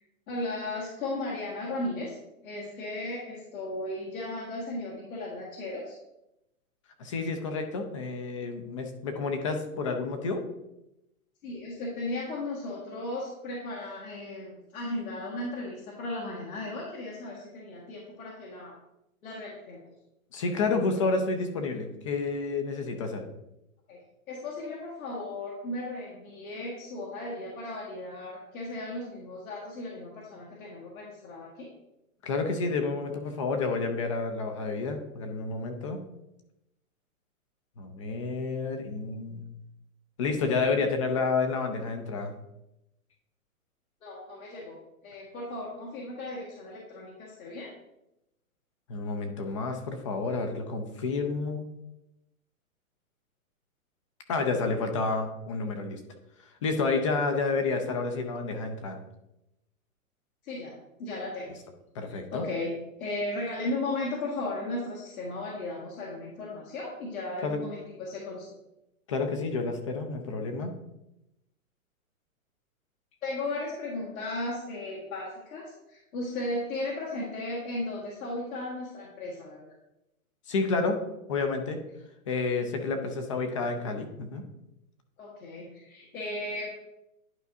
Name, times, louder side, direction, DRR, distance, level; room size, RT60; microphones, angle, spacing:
voice 1, 0.3-2.2 2.4-6.0 11.4-18.8 19.2-19.9 23.9-24.0 24.3-31.7 44.0-47.7 60.4-60.7 61.0-61.5 62.0-62.7 63.0-68.5 73.2-79.7 85.2-86.7, left 2 dB, 70° left, -5 dB, 1.9 m, -36 dB
voice 2, 7.0-10.4 20.3-23.2 32.2-36.0 37.8-39.5 40.2-42.4 48.9-51.7 54.3-56.0 56.4-59.0 61.9-62.4 67.4-67.6 69.1-70.7 80.5-81.0 81.3-81.8 82.3-84.4, left 4 dB, 25° left, 5 dB, 0.5 m, -30 dB
11.0 x 4.6 x 2.7 m, 0.88 s
hypercardioid pair, 155°, 43 cm